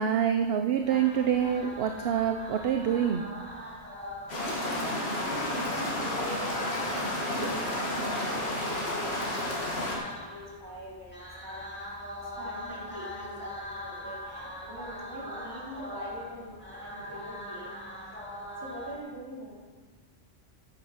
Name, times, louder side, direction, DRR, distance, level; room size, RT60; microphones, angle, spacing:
voice 1, 0.0-3.2, right 8 dB, 60° right, 6 dB, 0.8 m, -26 dB
sound 1, 0.8-19.0, left 1 dB, 10° left, 2.0 m, -42 dB
sound 2, 4.3-10.0, left 1 dB, 60° left, 2.4 m, -31 dB
voice 2, 4.4-11.6 12.3-18.2 18.6-19.6, equal, 20° right, -4 dB, 2.8 m, -44 dB
9.3 x 9.2 x 5.7 m, 1.3 s
omnidirectional pair, 1.2 m